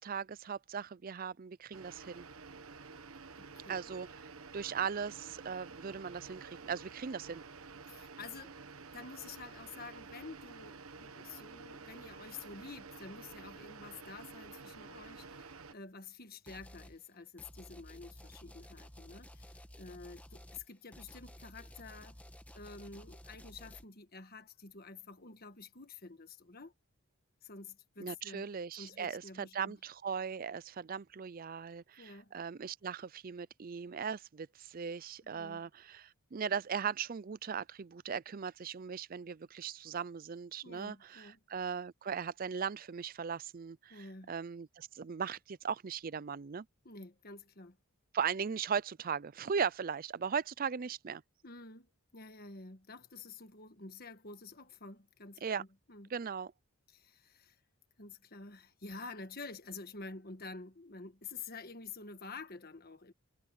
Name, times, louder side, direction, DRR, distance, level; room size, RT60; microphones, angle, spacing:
voice 1, 0.0-2.3 3.7-4.1 4.5-7.4 28.0-46.7 48.1-51.2 55.4-55.6 56.1-56.5, right 6 dB, 40° right, 0.4 m, -38 dB
sound 1, 1.7-15.7, right 4 dB, 75° right, 1.2 m, -51 dB
voice 2, 3.4-3.8 7.9-8.6 8.9-22.2 22.5-26.7 27.4-29.8 32.0-32.3 35.2-35.7 40.6-41.4 43.9-44.3 46.8-47.8 51.4-56.1 56.9-57.6 58.0-63.1, left 4 dB, 45° left, 1.4 m, -49 dB
sound 2, 16.5-17.0 17.4-23.8, equal, 5° left, 1.2 m, -53 dB
head